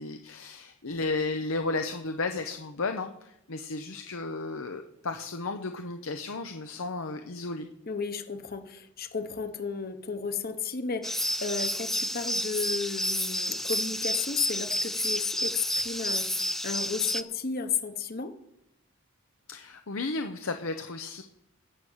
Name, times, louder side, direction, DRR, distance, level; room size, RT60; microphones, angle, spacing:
voice 1, 0.0-7.7 19.5-21.2, left 3 dB, 75° left, 6 dB, 0.8 m, -33 dB
voice 2, 7.9-18.4, left 5 dB, 45° left, 9 dB, 1.2 m, -33 dB
sound 1, 11.0-17.2, equal, ahead, 0.4 m, -30 dB
16.5 x 6.3 x 7.3 m, 0.81 s
head